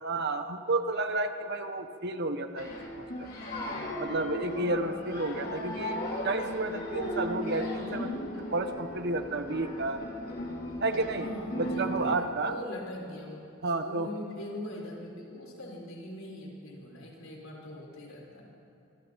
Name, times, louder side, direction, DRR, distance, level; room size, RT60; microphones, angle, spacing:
voice 1, 0.0-2.7 3.0-3.3 4.0-8.1 8.5-10.0 10.8-11.3 11.6-12.5 13.6-14.1, right 2 dB, 55° right, 7 dB, 1.2 m, -31 dB
sound 1, 2.6-12.2, equal, 50° left, 3.7 m, -36 dB
voice 2, 11.1-18.5, left 1 dB, 85° left, -2 dB, 5.7 m, -42 dB
25.5 x 25.5 x 4.2 m, 2.7 s
head